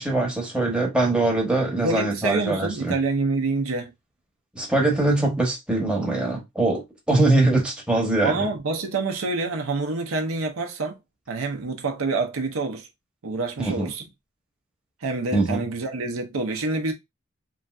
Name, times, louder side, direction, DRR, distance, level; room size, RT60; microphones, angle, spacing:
voice 1, 0.0-2.9 4.5-8.5 13.6-13.9 15.3-15.7, right 2 dB, 5° right, 0.8 m, -22 dB
voice 2, 1.8-3.9 8.2-11.0 11.3-12.9 13.2-14.1 15.0-16.9, right 3 dB, 85° right, 0.6 m, -27 dB
3.1 x 2.6 x 2.3 m
head